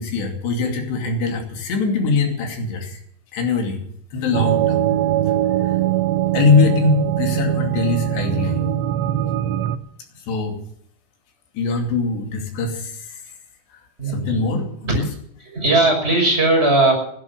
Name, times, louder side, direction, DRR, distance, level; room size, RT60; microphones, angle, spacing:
voice 1, 0.0-3.0 3.3-3.8 4.1-4.9 5.6-5.8 6.3-8.7 10.3-10.6 11.5-13.2 13.7-13.8 14.1-15.0, left 4 dB, 65° left, 2 dB, 4.6 m, -22 dB
sound 1, 4.3-9.8, right 12 dB, 85° right, 3.2 m, -21 dB
voice 2, 14.0-14.9 15.5-16.9, right 2 dB, 10° right, 1 dB, 5.8 m, -19 dB
16.5 x 12.0 x 6.8 m, 0.67 s
omnidirectional pair, 5.5 m